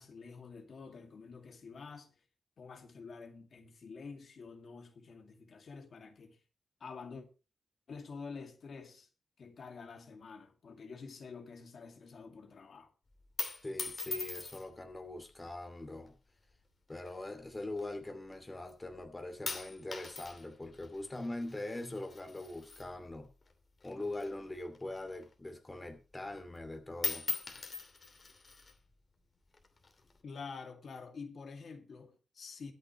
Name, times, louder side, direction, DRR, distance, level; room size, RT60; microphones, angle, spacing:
voice 1, 0.0-2.1 2.6-6.4 6.8-7.3 7.9-9.1 9.4-12.9 30.2-32.7, left 5 dB, 60° left, 2.2 m, -48 dB
sound 1, 13.1-14.9 15.7-16.1 17.0-18.3 18.7-19.1 19.5-23.5 23.8-25.5 25.9-26.0 26.3-26.7 26.9-28.8 29.5-30.2, left 3 dB, 35° left, 2.7 m, -41 dB
voice 2, 13.6-16.2 16.9-23.3 23.8-27.3, left 2 dB, 20° left, 2.5 m, -42 dB
23.0 x 8.0 x 3.1 m
wide cardioid pair, 115°, 0 cm